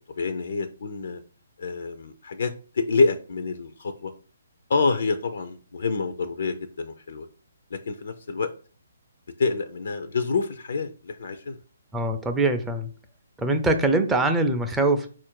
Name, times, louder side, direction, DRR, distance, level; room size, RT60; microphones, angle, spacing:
voice 1, 0.2-1.2 1.6-4.1 4.7-7.3 7.7-8.5 9.4-11.6, left 4 dB, 65° left, 9 dB, 0.4 m, -27 dB
voice 2, 11.9-12.9 13.4-15.1, right 2 dB, 10° right, 5 dB, 0.4 m, -23 dB
4.2 x 2.5 x 4.5 m, 0.39 s
hypercardioid pair, 145°, 0 cm